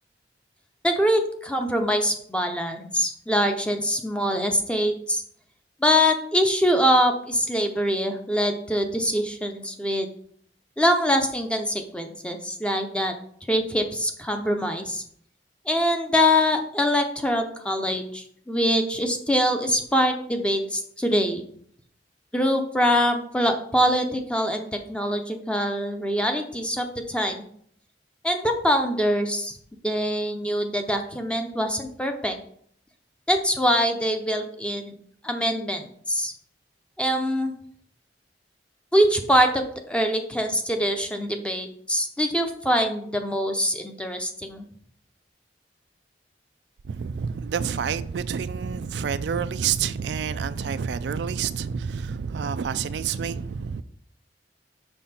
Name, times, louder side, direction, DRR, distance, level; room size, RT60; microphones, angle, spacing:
voice 1, 0.8-5.2 5.8-10.1 10.8-13.1 13.5-15.0 15.7-21.4 22.3-27.4 28.2-29.6 29.8-32.4 33.3-34.9 35.2-36.3 37.0-37.5 38.9-44.6, equal, 5° left, 0.7 m, -24 dB
voice 2, 46.9-53.8, right 6 dB, 75° right, 0.4 m, -28 dB
5.8 x 5.6 x 4.3 m
head